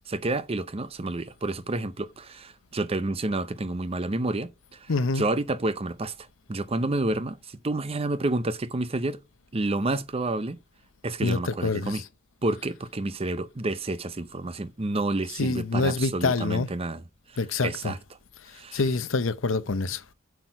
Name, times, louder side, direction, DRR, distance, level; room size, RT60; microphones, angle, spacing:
voice 1, 0.1-6.1 6.5-9.2 9.5-10.6 11.0-12.0 12.4-17.0 17.6-18.0 18.5-18.9, right 2 dB, 30° right, 0.6 m, -29 dB
voice 2, 4.9-5.2 11.2-11.9 15.4-16.7 17.4-17.9 18.7-20.0, left 3 dB, 75° left, 0.8 m, -26 dB
8.1 x 6.2 x 4.7 m
head